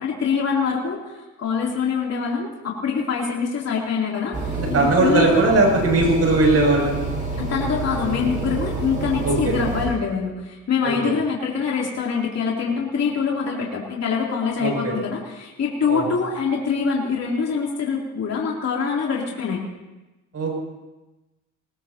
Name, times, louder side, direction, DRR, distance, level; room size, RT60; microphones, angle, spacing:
voice 1, 0.0-5.4 7.4-19.6, left 6 dB, 55° left, -3 dB, 3.2 m, -24 dB
sound 1, 4.3-9.9, right 2 dB, 25° right, 7.5 m, -28 dB
voice 2, 4.6-7.0 9.2-9.6 10.8-11.1 14.6-14.9 15.9-16.0 20.3-20.6, right 2 dB, 55° right, 0 dB, 7.2 m, -19 dB
20.5 x 20.0 x 2.9 m, 1.1 s
cardioid pair, 90°, 30 cm